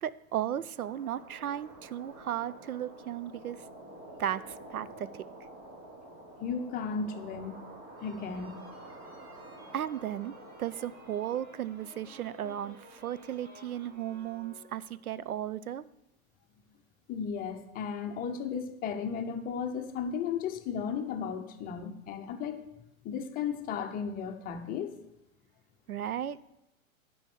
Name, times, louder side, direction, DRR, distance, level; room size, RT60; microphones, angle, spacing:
voice 1, 0.0-3.6 4.2-5.1 9.7-15.8 25.9-26.4, right 10 dB, 85° right, 16 dB, 0.5 m, -35 dB
sound 1, 0.7-14.6, right 1 dB, 45° right, 3.3 m, -50 dB
voice 2, 6.4-7.6 8.0-8.5 17.1-22.6 23.0-25.0, left 6 dB, 20° left, 7 dB, 0.7 m, -35 dB
sound 2, 8.0-15.1, equal, 20° right, 1.7 m, -56 dB
10.5 x 5.4 x 6.8 m, 0.89 s
figure-of-eight pair, 110°, 42 cm